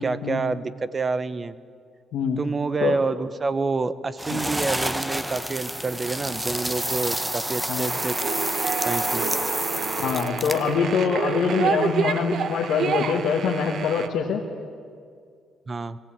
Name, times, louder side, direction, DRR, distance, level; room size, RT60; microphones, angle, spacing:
voice 1, 0.0-1.5 2.4-8.1 8.8-9.3 15.7-16.0, right 3 dB, 30° right, 15 dB, 0.8 m, -28 dB
sound 1, 4.2-10.8, right 1 dB, 5° right, 1.0 m, -28 dB
sound 2, 7.9-14.1, right 7 dB, 65° right, 0.9 m, -29 dB
voice 2, 10.0-14.4, left 6 dB, 80° left, -1 dB, 1.6 m, -24 dB
20.0 x 15.0 x 8.8 m, 2.2 s
cardioid pair, 90°, 0 cm